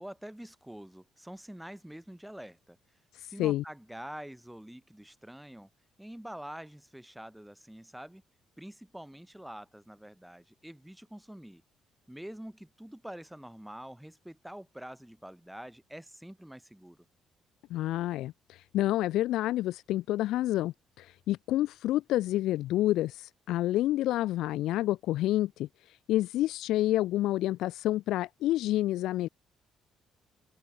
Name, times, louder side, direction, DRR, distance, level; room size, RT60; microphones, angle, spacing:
voice 1, 0.0-2.8 3.2-5.7 6.0-8.2 8.6-11.6 12.1-17.0, right 1 dB, 5° right, 4.1 m, -46 dB
voice 2, 3.1-3.6 17.7-29.3, left 15 dB, 80° left, 1.4 m, -29 dB
open air
cardioid pair, 150°, 0 cm